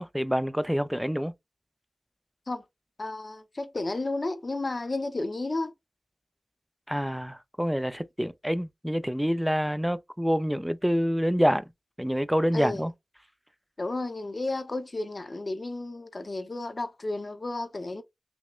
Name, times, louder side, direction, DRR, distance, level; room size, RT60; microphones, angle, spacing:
voice 1, 0.0-1.3 6.9-11.6 12.0-12.9, equal, ahead, 0.3 m, -27 dB
voice 2, 3.0-5.7 12.5-12.9 13.8-18.0, left 2 dB, 40° left, 0.6 m, -32 dB
5.9 x 2.1 x 2.3 m
wide cardioid pair, 90°, 0 cm